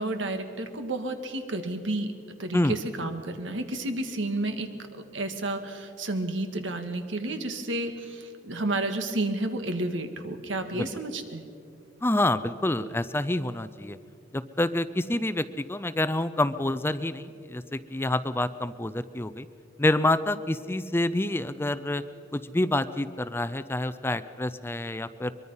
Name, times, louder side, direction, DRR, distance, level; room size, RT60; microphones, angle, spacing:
voice 1, 0.0-2.1 2.4-11.5, right 2 dB, 85° right, 7 dB, 1.8 m, -31 dB
voice 2, 12.0-14.0 14.3-19.5 19.8-22.0 22.3-25.3, left 1 dB, 10° left, 14 dB, 0.5 m, -27 dB
23.0 x 22.5 x 5.6 m, 2.5 s
head